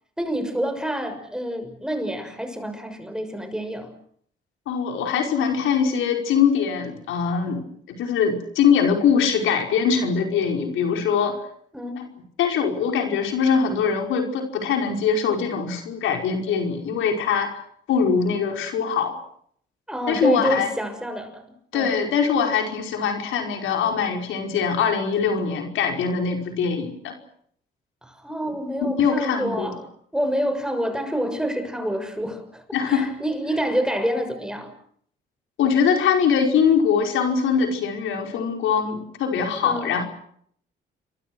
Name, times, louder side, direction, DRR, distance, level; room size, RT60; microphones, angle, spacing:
voice 1, 0.2-3.9 11.7-12.1 19.9-22.0 28.0-29.8 30.1-34.7 39.6-40.0, equal, 5° right, 6.4 m, -27 dB
voice 2, 4.7-11.4 12.4-17.5 17.9-19.2 20.1-20.7 21.7-27.1 29.0-29.7 32.7-33.1 35.6-40.1, left 6 dB, 85° left, 5.2 m, -22 dB
29.0 x 24.0 x 6.3 m
cardioid pair, 90°, 20 cm